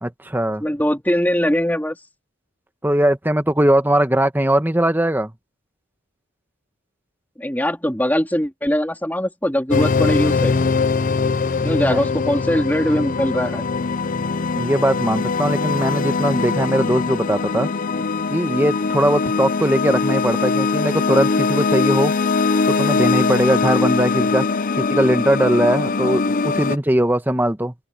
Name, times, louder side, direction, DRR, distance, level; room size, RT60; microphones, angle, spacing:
voice 1, 0.0-0.6 2.8-5.3 11.6-12.0 14.5-17.7 18.3-22.1 22.7-27.7, right 1 dB, 10° right, 1.3 m, -20 dB
voice 2, 0.6-2.0 7.4-10.5 11.6-13.7, equal, 10° left, 3.5 m, -21 dB
sound 1, 9.7-26.8, left 4 dB, 40° left, 0.5 m, -21 dB
open air
head